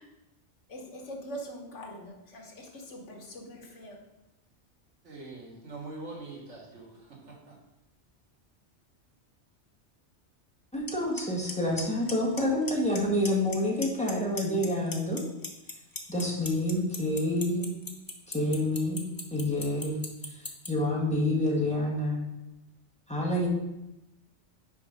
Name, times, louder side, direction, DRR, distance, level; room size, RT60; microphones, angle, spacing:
voice 1, 0.7-4.0, equal, 80° left, 2 dB, 1.5 m, -43 dB
voice 2, 5.0-7.6, right 3 dB, 80° right, -2 dB, 2.0 m, -43 dB
voice 3, 10.7-15.2 16.1-17.7 18.3-19.0 19.3-20.0 20.7-22.2 23.1-23.5, left 1 dB, 5° left, -4 dB, 1.5 m, -28 dB
Clock, 10.9-11.0 11.2-11.5 11.8-12.4 12.7-13.0 13.3-14.1 14.4-20.7, left 3 dB, 20° left, 0.7 m, -36 dB
5.9 x 5.1 x 5.1 m, 0.95 s
omnidirectional pair, 1.2 m